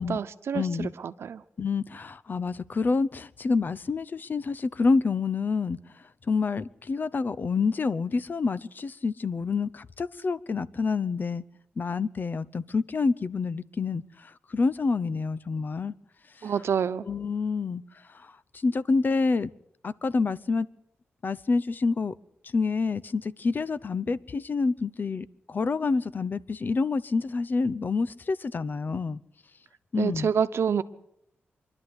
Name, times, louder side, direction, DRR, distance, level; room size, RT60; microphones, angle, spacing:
voice 1, 0.0-1.4 16.4-17.0 29.9-30.8, right 7 dB, 75° right, 1.0 m, -27 dB
voice 2, 0.5-0.9 1.6-5.8 6.3-11.4 11.8-15.9 17.1-17.8 18.1-18.3 18.6-19.5 19.8-20.7 21.2-22.1 22.5-29.2 29.9-30.3, left 4 dB, 45° left, 0.8 m, -27 dB
25.0 x 12.0 x 9.7 m
wide cardioid pair, 95°, 4 cm